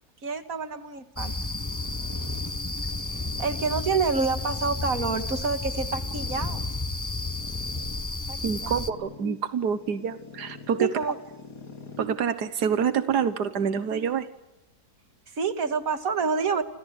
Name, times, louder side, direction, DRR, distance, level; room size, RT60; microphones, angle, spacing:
voice 1, 0.2-1.3 3.1-6.6 8.3-8.8 10.8-11.2 15.3-16.6, right 4 dB, 60° right, 8 dB, 2.4 m, -28 dB
sound 1, 1.2-8.9, left 2 dB, 15° left, 0.8 m, -32 dB
sound 2, 1.6-12.1, left 4 dB, 90° left, 3.4 m, -46 dB
voice 2, 8.4-10.9 12.0-14.3, right 7 dB, 90° right, 11 dB, 1.8 m, -27 dB
29.0 x 27.0 x 6.6 m, 0.90 s
omnidirectional pair, 1.7 m